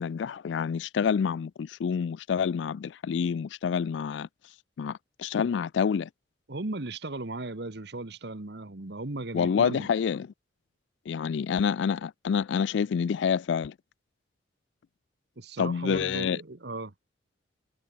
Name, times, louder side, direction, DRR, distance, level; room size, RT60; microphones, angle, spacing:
voice 1, 0.0-4.3 4.8-6.1 9.3-10.3 11.1-13.7 15.6-16.4, left 7 dB, 80° left, 0.3 m, -27 dB
voice 2, 6.5-9.9 15.4-16.9, right 2 dB, 65° right, 1.4 m, -36 dB
head